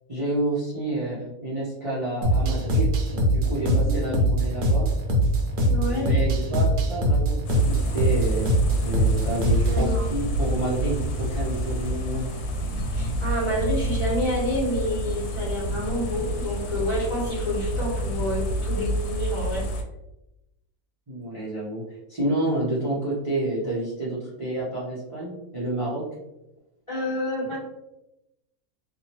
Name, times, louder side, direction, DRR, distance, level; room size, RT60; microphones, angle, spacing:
voice 1, 0.1-4.9 5.9-8.5 8.8-12.3 21.1-21.8 22.1-26.0, right 1 dB, 30° right, -8 dB, 0.7 m, -29 dB
sound 1, 2.2-9.9, right 1 dB, 80° right, 1.1 m, -22 dB
voice 2, 3.6-4.1 5.6-6.2 9.7-10.1 12.9-19.6 26.9-27.6, left 1 dB, 25° left, -8 dB, 1.1 m, -28 dB
sound 2, 7.5-19.8, equal, 85° left, 1.1 m, -28 dB
2.8 x 2.5 x 2.9 m, 0.91 s
omnidirectional pair, 1.5 m